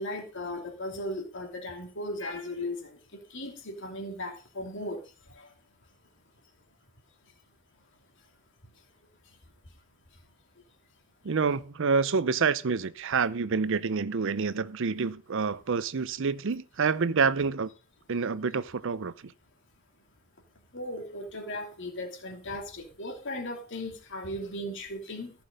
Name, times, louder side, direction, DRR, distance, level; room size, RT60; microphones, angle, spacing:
voice 1, 0.0-2.9 3.3-5.0 5.4-5.5 20.7-25.3, left 1 dB, 60° left, 2.9 m, -37 dB
voice 2, 11.2-17.7 18.1-19.3, right 5 dB, 60° right, 0.6 m, -27 dB
14.5 x 6.1 x 5.3 m
head